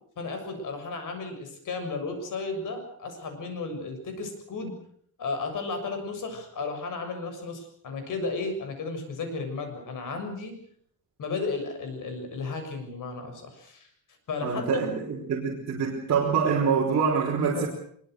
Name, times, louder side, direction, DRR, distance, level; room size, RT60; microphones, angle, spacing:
voice 1, 0.2-4.7 5.2-10.5 11.2-13.9 14.3-14.9 17.5-17.7, left 3 dB, 55° left, 6 dB, 7.2 m, -34 dB
voice 2, 14.4-17.7, right 6 dB, 45° right, -3 dB, 5.0 m, -25 dB
24.0 x 23.0 x 6.6 m, 0.64 s
cardioid pair, 155°, 37 cm